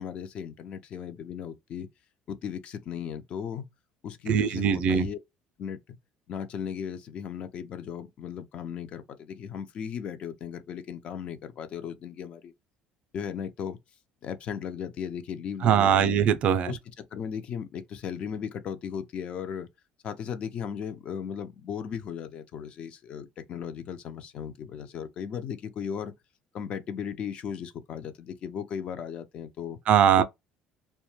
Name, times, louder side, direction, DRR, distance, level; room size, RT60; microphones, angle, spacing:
voice 1, 0.0-1.9 2.3-3.7 4.0-5.2 5.6-6.0 6.3-12.5 13.1-13.8 14.2-16.2 16.7-19.7 20.0-26.1 26.5-29.8 30.2-30.3, left 7 dB, 45° left, 0.4 m, -36 dB
voice 2, 4.3-5.1 15.6-16.7 29.9-30.2, right 8 dB, 50° right, 0.3 m, -21 dB
2.1 x 2.1 x 3.0 m
cardioid pair, 130°, 3 cm